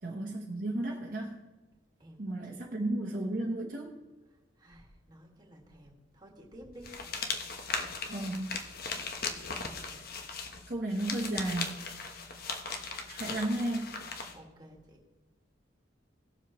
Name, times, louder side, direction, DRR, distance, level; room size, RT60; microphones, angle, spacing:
voice 1, 0.0-1.4 2.2-4.0 8.1-8.6 10.7-11.7 13.1-14.0, right 1 dB, 45° right, -2 dB, 1.0 m, -33 dB
voice 2, 2.0-2.6 4.3-7.0 14.3-15.0, equal, 20° right, 0 dB, 1.9 m, -53 dB
sound 1, 6.8-14.4, left 4 dB, 50° left, 1.0 m, -38 dB
18.0 x 7.4 x 3.0 m, 1.2 s
head